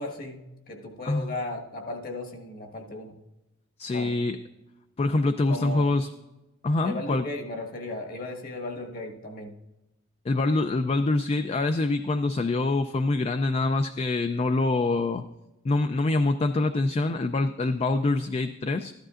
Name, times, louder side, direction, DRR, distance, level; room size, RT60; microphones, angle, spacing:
voice 1, 0.0-3.2 3.9-4.1 5.5-5.9 6.8-9.6, left 2 dB, 45° left, 2 dB, 1.5 m, -36 dB
voice 2, 3.8-4.4 5.0-6.1 6.6-7.3 10.2-15.2 15.6-18.9, left 2 dB, 30° left, 9 dB, 0.3 m, -25 dB
13.5 x 11.5 x 2.5 m, 0.97 s
head